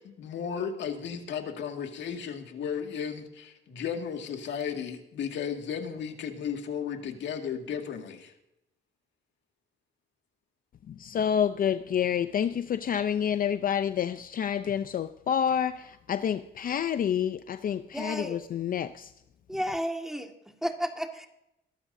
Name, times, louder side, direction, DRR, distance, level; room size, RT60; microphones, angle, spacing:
voice 1, 0.0-8.3, left 7 dB, 70° left, 2.1 m, -34 dB
voice 2, 10.9-19.1, left 8 dB, 50° left, 0.6 m, -28 dB
voice 3, 17.9-18.4 19.5-21.3, equal, ahead, 1.9 m, -33 dB
22.0 x 12.0 x 2.7 m
cardioid pair, 95°, 19 cm